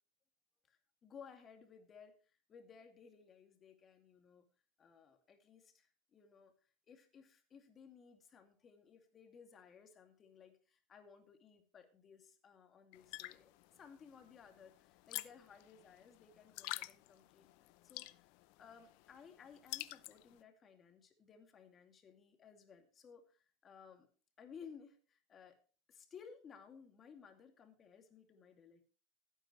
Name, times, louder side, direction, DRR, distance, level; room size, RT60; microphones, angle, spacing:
voice 1, 0.7-4.5 4.8-24.1 24.4-25.6 25.9-28.9, left 6 dB, 30° left, 5 dB, 2.4 m, -59 dB
sound 1, 12.9-20.4, left 21 dB, 70° left, 0.6 m, -49 dB
15.5 x 9.1 x 3.2 m, 0.37 s
supercardioid pair, 125°, 0 cm